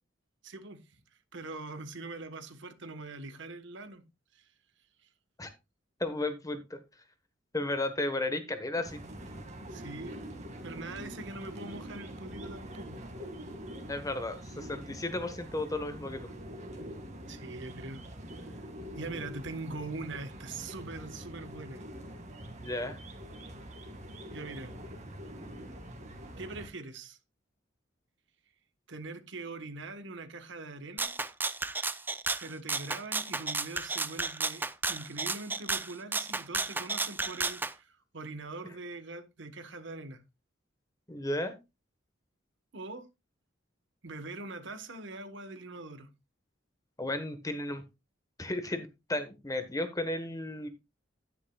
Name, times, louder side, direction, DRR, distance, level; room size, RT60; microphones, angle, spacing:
voice 1, 0.4-1.0 1.3-4.0 4.3-4.4 9.7-10.2 10.6-13.0 16.8-16.9 17.3-18.0 19.0-21.8 24.3-24.7 26.4-27.2 28.9-31.1 32.4-40.2 42.7-43.1 44.0-46.1, right 3 dB, 65° right, 1.2 m, -42 dB
voice 2, 6.0-6.8 7.5-9.0 13.9-16.3 22.6-23.0 41.1-41.5 47.0-47.8 48.4-50.7, left 2 dB, 20° left, 1.2 m, -34 dB
sound 1, 8.8-26.7, equal, 40° right, 2.0 m, -44 dB
Rattle (instrument), 31.0-37.7, right 3 dB, 10° right, 0.4 m, -33 dB
10.5 x 10.0 x 2.3 m
head